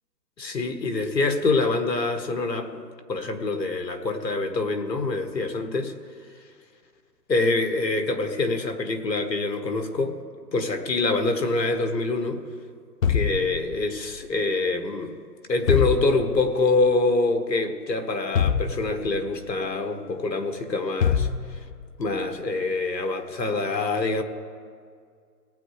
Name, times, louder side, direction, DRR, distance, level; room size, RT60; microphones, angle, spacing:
voice 1, 0.4-5.9 7.3-10.2 10.5-12.4 13.1-15.2 15.5-21.6 22.0-24.2, left 3 dB, 80° left, 6 dB, 1.6 m, -25 dB
sound 1, 13.0-14.1 15.7-16.6 18.3-19.4 21.0-22.0, left 7 dB, 55° left, 0.6 m, -25 dB
19.0 x 9.2 x 3.3 m, 2.1 s
hypercardioid pair, 160°, 50 cm